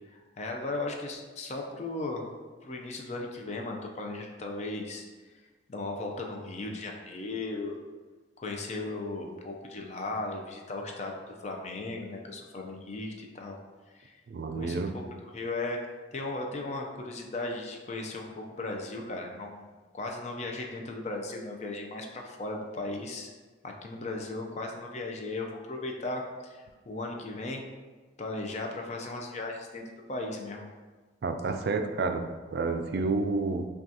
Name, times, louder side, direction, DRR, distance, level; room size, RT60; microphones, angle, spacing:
voice 1, 0.1-2.3 2.6-5.0 5.7-7.8 8.4-13.6 13.9-14.1 14.5-23.3 23.6-27.6 28.2-29.8 30.1-30.7, left 2 dB, 35° left, 1 dB, 0.4 m, -36 dB
voice 2, 14.3-14.9 31.2-33.7, right 3 dB, 55° right, 6 dB, 0.3 m, -30 dB
5.9 x 2.3 x 2.7 m, 1.4 s
head